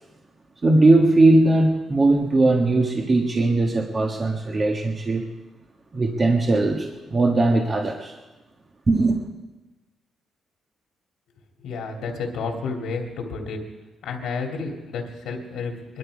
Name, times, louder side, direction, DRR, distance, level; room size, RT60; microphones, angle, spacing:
voice 1, 0.6-5.3 5.9-8.2 8.9-9.2, right 2 dB, 30° right, 2 dB, 1.5 m, -19 dB
voice 2, 11.6-13.6 14.0-16.0, left 4 dB, 85° left, 2 dB, 2.8 m, -31 dB
22.0 x 12.5 x 4.9 m, 1.1 s
cardioid pair, 115°, 0 cm